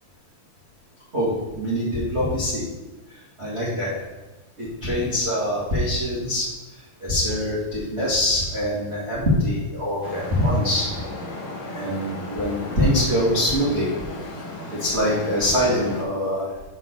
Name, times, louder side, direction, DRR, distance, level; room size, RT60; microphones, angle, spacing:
voice 1, 1.1-2.6 3.4-4.0 4.6-6.5 7.0-10.9 11.7-13.9 14.7-16.5, left 1 dB, 75° right, -8 dB, 0.6 m, -23 dB
Traffic noise roadway noise, 10.0-16.0, left 2 dB, 55° left, 2.4 m, -35 dB
7.0 x 4.2 x 6.7 m, 1.2 s
omnidirectional pair, 4.8 m